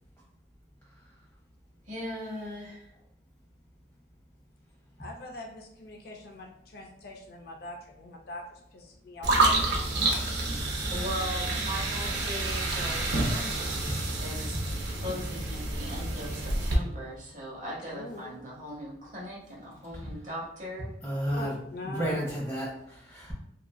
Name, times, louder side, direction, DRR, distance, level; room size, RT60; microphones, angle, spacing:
voice 1, 1.8-2.8 10.9-14.6 14.9-20.9, equal, 40° right, -5 dB, 0.9 m, -39 dB
voice 2, 5.0-9.9 17.6-18.4 21.3-22.4, left 2 dB, 55° left, 1 dB, 0.4 m, -43 dB
sound 1, 9.2-16.7, right 2 dB, 65° right, 0.5 m, -29 dB
voice 3, 21.0-21.6 21.8-23.3, equal, 15° left, -5 dB, 0.9 m, -32 dB
2.9 x 2.5 x 2.2 m, 0.79 s
head